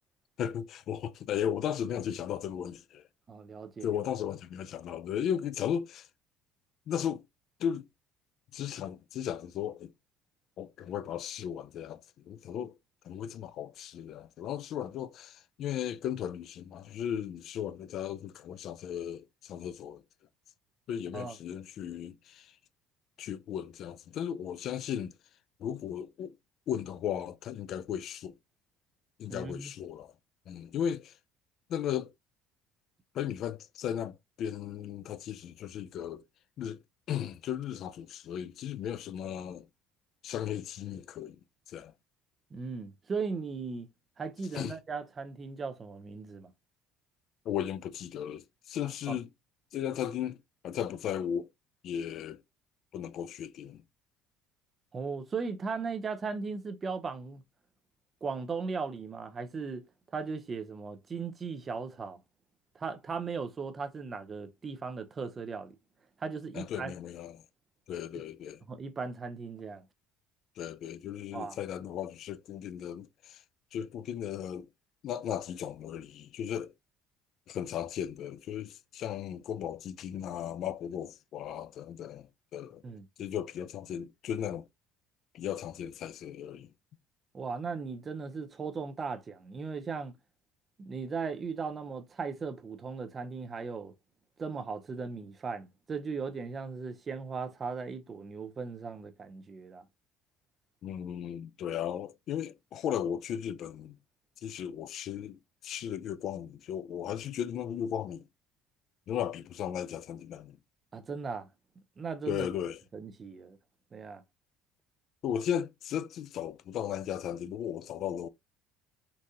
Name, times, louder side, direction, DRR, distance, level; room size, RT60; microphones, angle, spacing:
voice 1, 0.4-3.0 3.8-6.1 6.9-7.2 7.6-7.9 8.5-9.9 10.6-12.8 13.0-20.0 20.9-22.6 23.2-25.1 25.6-26.4 26.7-28.4 29.2-30.1 30.5-31.1 31.7-32.1 33.1-36.2 36.6-36.8 37.1-39.7 40.2-41.4 41.7-41.9 44.5-44.8 47.5-49.3 49.7-50.4 50.6-51.5 51.8-52.4 52.9-53.8 66.5-67.4 67.9-68.6 70.6-73.4 73.7-74.7 75.0-76.7 77.5-82.8 83.2-84.7 85.3-86.7 100.8-104.0 104.4-108.3 109.1-110.6 112.3-112.8 115.2-118.3, left 9 dB, 50° left, 0.3 m, -36 dB
voice 2, 3.3-3.9 21.1-21.4 29.3-29.7 42.5-43.9 44.2-46.5 49.1-49.2 54.9-57.4 58.2-59.9 60.1-62.2 62.7-65.7 66.2-66.9 68.1-68.2 68.7-69.8 71.3-71.6 82.8-83.1 87.3-90.1 90.8-93.9 94.4-99.8 110.9-111.5 112.0-112.5 112.9-113.6 113.9-114.2, right 5 dB, 25° right, 0.5 m, -37 dB
3.9 x 2.4 x 2.7 m
cardioid pair, 135°, 0 cm